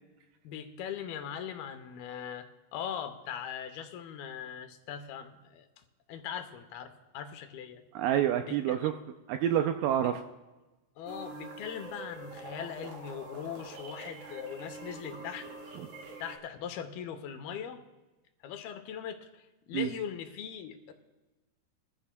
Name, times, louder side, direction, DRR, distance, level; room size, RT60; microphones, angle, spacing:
voice 1, 0.4-7.8 8.4-8.9 10.0-10.2 11.0-15.5 16.2-17.8 18.4-20.9, left 8 dB, 80° left, 8 dB, 2.7 m, -40 dB
voice 2, 7.9-8.9 9.3-10.2 15.8-15.9 19.7-19.9, right 10 dB, 85° right, 6 dB, 2.0 m, -28 dB
sound 1, 11.1-16.4, right 2 dB, 60° right, 3.0 m, -45 dB
22.5 x 14.5 x 2.2 m, 1.1 s
omnidirectional pair, 4.4 m